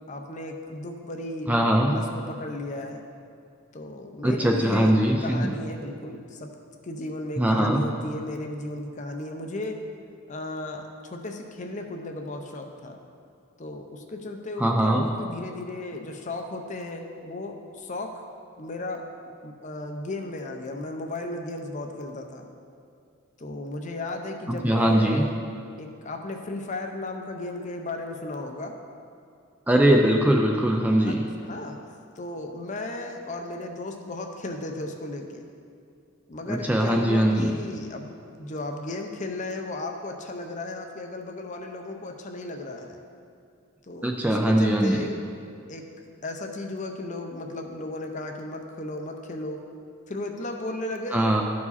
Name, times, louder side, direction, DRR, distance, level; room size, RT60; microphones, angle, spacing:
voice 1, 0.1-3.0 3.7-5.0 5.2-6.5 6.8-9.8 10.3-13.0 13.6-18.2 18.6-19.0 19.4-22.5 23.4-25.3 25.8-28.7 31.0-31.8 32.2-35.5 36.3-43.0 43.8-45.2 45.7-45.8 46.2-49.6 50.1-51.3, left 2 dB, 35° left, 4 dB, 0.6 m, -35 dB
voice 2, 1.5-1.9 4.2-5.5 7.4-7.8 14.6-15.1 24.5-25.2 29.7-31.2 36.5-37.5 44.0-45.0 51.1-51.4, right 1 dB, 5° right, 1 dB, 0.4 m, -21 dB
12.5 x 4.8 x 4.1 m, 2.5 s
head